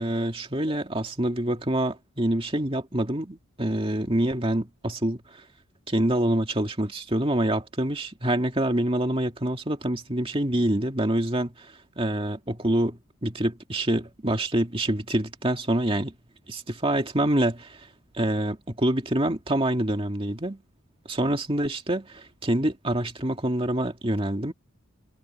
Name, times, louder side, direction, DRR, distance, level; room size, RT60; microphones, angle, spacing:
voice 1, 0.0-5.4 5.9-16.1 16.5-17.9 18.1-20.6 21.1-24.5, right 1 dB, 25° right, 2.2 m, -26 dB
head